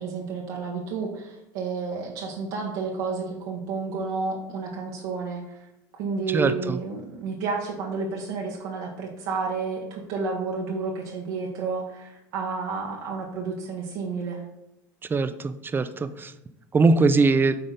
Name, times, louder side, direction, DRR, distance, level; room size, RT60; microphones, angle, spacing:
voice 1, 0.0-5.6 5.9-14.4, right 4 dB, 70° right, -1 dB, 1.2 m, -31 dB
voice 2, 6.3-6.8 15.1-16.3 16.7-17.6, right 3 dB, 20° right, 12 dB, 0.5 m, -21 dB
8.8 x 3.9 x 4.0 m, 0.87 s
hypercardioid pair, 85°, 10 cm